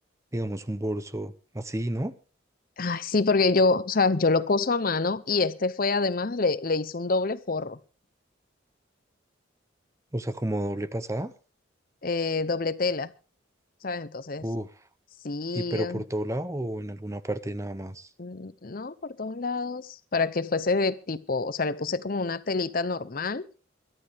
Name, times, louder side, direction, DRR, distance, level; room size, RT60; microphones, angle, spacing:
voice 1, 0.3-2.1 10.1-11.3 14.4-14.7 15.5-18.1, right 1 dB, 15° right, 0.7 m, -31 dB
voice 2, 2.8-7.8 12.0-13.1 13.8-14.4 15.2-16.0 18.2-23.5, left 3 dB, 45° left, 0.7 m, -26 dB
22.0 x 12.0 x 3.5 m
head